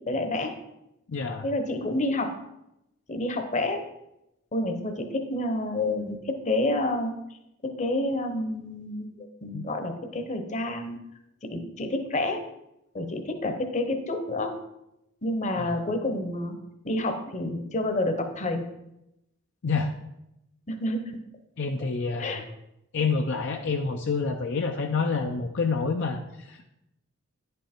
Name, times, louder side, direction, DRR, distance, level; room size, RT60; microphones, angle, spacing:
voice 1, 0.1-0.5 1.4-2.3 3.1-3.8 4.5-7.1 7.6-11.0 11.4-12.4 12.9-14.5 15.2-16.6 16.8-18.7 20.7-21.2 22.2-22.4, left 2 dB, 35° left, 6 dB, 0.9 m, -29 dB
voice 2, 1.1-1.5 9.5-9.6 15.6-15.8 19.6-19.9 21.6-22.5 22.9-26.6, left 4 dB, 60° left, 4 dB, 0.5 m, -28 dB
9.9 x 5.4 x 4.4 m, 0.86 s
head